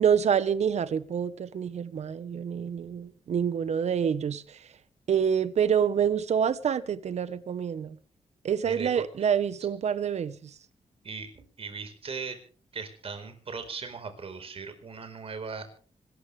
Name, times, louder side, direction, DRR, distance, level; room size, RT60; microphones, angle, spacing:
voice 1, 0.0-4.6 5.1-8.0 8.4-10.5, right 8 dB, 70° right, 1.1 m, -27 dB
voice 2, 8.6-9.3 11.0-12.4 12.7-15.7, right 5 dB, 55° right, 4.4 m, -38 dB
26.0 x 13.5 x 3.3 m
wide cardioid pair, 110°, 12 cm